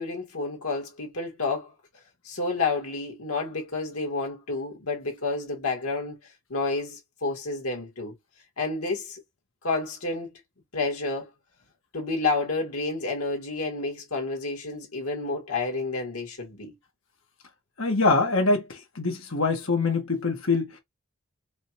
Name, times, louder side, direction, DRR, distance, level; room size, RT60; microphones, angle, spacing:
voice 1, 0.0-1.7 2.3-6.2 6.5-8.1 8.6-9.2 9.6-10.4 10.7-11.3 11.9-16.7, left 3 dB, 90° left, 1.8 m, -30 dB
voice 2, 17.8-20.8, left 3 dB, 70° left, 1.4 m, -24 dB
5.0 x 2.5 x 2.9 m
head